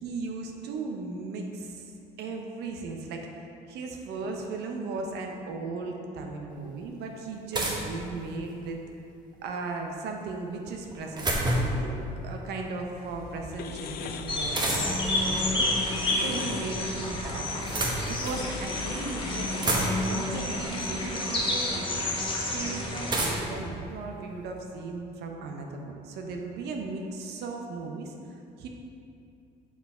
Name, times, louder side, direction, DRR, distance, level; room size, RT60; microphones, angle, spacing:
voice 1, 0.0-1.9 2.2-8.8 9.4-11.3 11.6-12.0 12.2-15.7 16.1-17.7 18.0-19.8 20.1-22.1 22.4-28.7, right 3 dB, 75° right, 2 dB, 0.7 m, -37 dB
sound 1, 6.5-6.6 7.5-8.6 10.7-11.9 14.5-15.1 16.3-16.9 17.5-18.5 19.1-19.2 19.4-20.3 21.4-21.5 23.1-24.6, right 1 dB, 25° right, 0.9 m, -30 dB
sound 2, 13.0-20.7, left 6 dB, 65° left, 0.4 m, -41 dB
sound 3, 14.3-23.4, left 1 dB, 30° left, 1.1 m, -30 dB
5.8 x 4.7 x 4.2 m, 2.6 s
cardioid pair, 110°, 17 cm